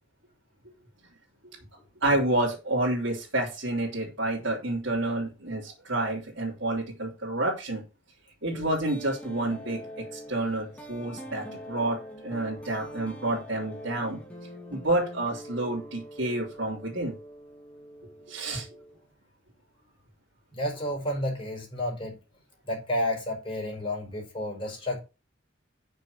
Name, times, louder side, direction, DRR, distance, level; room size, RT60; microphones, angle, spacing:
voice 1, 2.0-7.8 8.4-14.2 14.7-17.1 18.3-18.7, right 2 dB, 70° right, 3.1 m, -29 dB
sound 1, 8.5-19.1, equal, 5° left, 2.4 m, -44 dB
voice 2, 20.5-22.2 22.6-25.0, left 1 dB, 30° left, 4.8 m, -31 dB
6.6 x 6.4 x 6.7 m
head